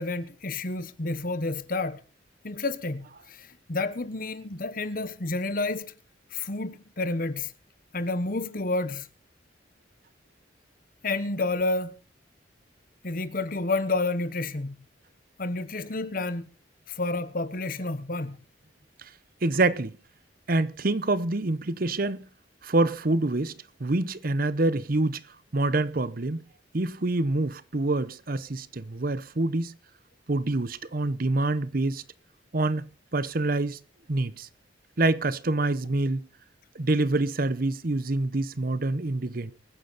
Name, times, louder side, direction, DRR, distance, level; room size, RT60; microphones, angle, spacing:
voice 1, 0.0-2.0 2.4-5.9 6.3-7.5 7.9-9.1 11.0-12.0 13.0-14.8 15.4-16.5 16.9-18.4, left 2 dB, 50° left, 1.1 m, -30 dB
voice 2, 19.4-19.9 20.5-22.2 22.6-23.5 23.8-25.2 25.5-26.4 26.7-29.7 30.3-32.0 32.5-32.9 33.1-33.8 34.1-34.5 35.0-36.3 36.7-39.5, right 2 dB, 50° right, 0.8 m, -26 dB
23.5 x 10.0 x 4.1 m
head